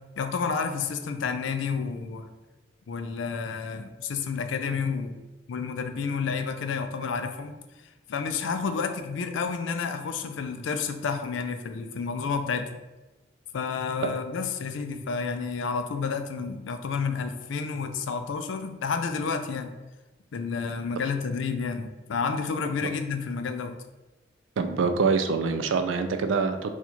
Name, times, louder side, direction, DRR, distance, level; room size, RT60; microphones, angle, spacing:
voice 1, 0.2-2.3 2.9-5.2 5.5-7.6 7.8-12.7 13.5-19.7 20.3-23.8, left 5 dB, 85° left, 8 dB, 0.4 m, -30 dB
voice 2, 24.6-26.7, right 4 dB, 85° right, 8 dB, 0.4 m, -25 dB
4.2 x 2.4 x 2.8 m, 1.1 s
head